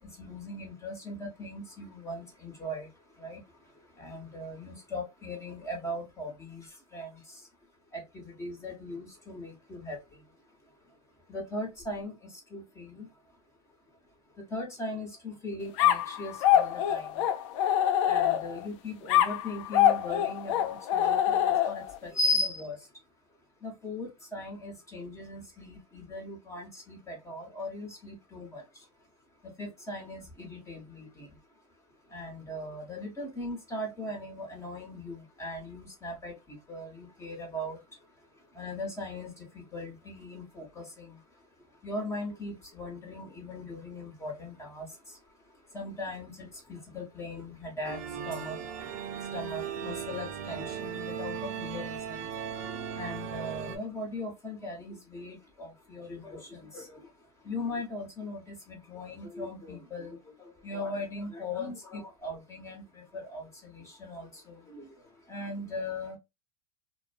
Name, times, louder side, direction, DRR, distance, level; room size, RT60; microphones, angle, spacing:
voice 1, 0.2-2.9 3.2-3.4 4.0-6.7 6.9-7.2 7.9-10.0 11.3-12.1 12.5-13.1 14.5-17.2 18.1-22.8 23.6-28.6 29.6-31.3 32.1-37.8 38.6-41.2 41.8-44.9 45.7-48.0 48.2-48.6 49.3-52.3 52.9-57.1 57.4-64.9 65.3-66.2, left 2 dB, 15° left, 1.1 m, -38 dB
sound 1, 15.8-18.6 19.1-22.0, left 11 dB, 60° left, 0.4 m, -25 dB
sound 2, 47.8-53.8, right 8 dB, 60° right, 0.7 m, -37 dB
2.5 x 2.1 x 2.5 m
hypercardioid pair, 115°, 18 cm